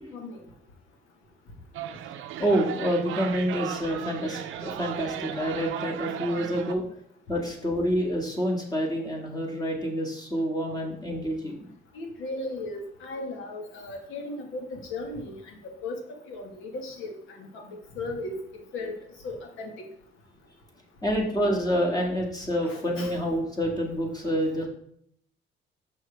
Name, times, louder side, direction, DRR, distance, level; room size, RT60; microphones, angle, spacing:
sound 1, 1.7-6.7, right 10 dB, 85° right, 0.6 m, -35 dB
voice 1, 2.4-6.8 7.3-11.7 21.0-24.7, equal, 20° left, -1 dB, 1.9 m, -27 dB
voice 2, 11.9-16.0 16.3-18.4 18.7-19.0 19.2-19.7 22.6-23.2, left 2 dB, 85° left, 2 dB, 1.6 m, -36 dB
6.2 x 6.1 x 3.4 m, 0.66 s
cardioid pair, 90°, 20 cm